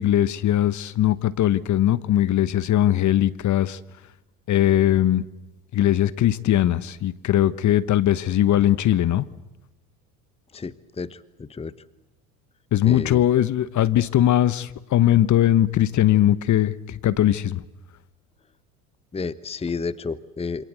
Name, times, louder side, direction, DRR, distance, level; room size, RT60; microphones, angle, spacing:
voice 1, 0.0-3.8 4.5-5.2 5.7-9.2 12.7-17.6, left 12 dB, 40° left, 1.2 m, -20 dB
voice 2, 10.5-11.7 12.8-13.2 19.1-20.6, left 4 dB, 15° left, 1.0 m, -31 dB
28.0 x 26.5 x 8.1 m
hypercardioid pair, 75°, 44 cm